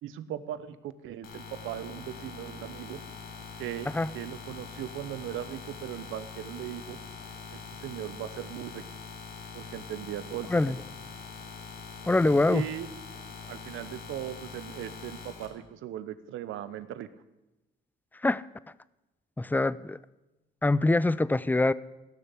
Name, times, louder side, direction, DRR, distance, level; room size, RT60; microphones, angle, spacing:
voice 1, 0.0-3.0 3.6-7.0 7.5-8.8 9.5-10.5 12.5-12.9 13.5-17.1, right 12 dB, 85° right, 14 dB, 0.9 m, -38 dB
sound 1, 1.2-15.5, left 5 dB, 85° left, 3.5 m, -44 dB
voice 2, 10.5-10.8 12.1-12.6 18.2-18.4 19.4-20.0 20.6-21.7, left 2 dB, 10° left, 19 dB, 0.4 m, -24 dB
16.5 x 6.9 x 8.3 m, 1.0 s
cardioid pair, 90°, 20 cm